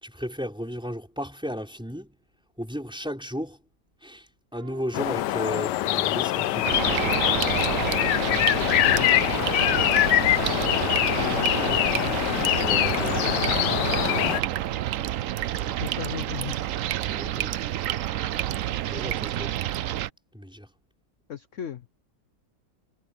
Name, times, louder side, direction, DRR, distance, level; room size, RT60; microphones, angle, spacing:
voice 1, 0.0-2.2 2.6-3.6 4.0-6.8 12.6-13.8 15.5-16.0 17.0-17.6 18.9-19.6 20.3-20.7, equal, 5° right, 4.7 m, -35 dB
sound 1, 4.5-12.0 13.1-13.5 14.7-20.1, right 5 dB, 45° right, 5.2 m, -51 dB
sound 2, 4.9-14.4, left 15 dB, 80° left, 1.2 m, -24 dB
sound 3, 6.6-20.1, right 13 dB, 70° right, 0.8 m, -29 dB
voice 2, 8.5-9.1 11.1-12.2 15.8-16.6 21.3-21.9, left 9 dB, 55° left, 1.1 m, -36 dB
omnidirectional pair, 1.9 m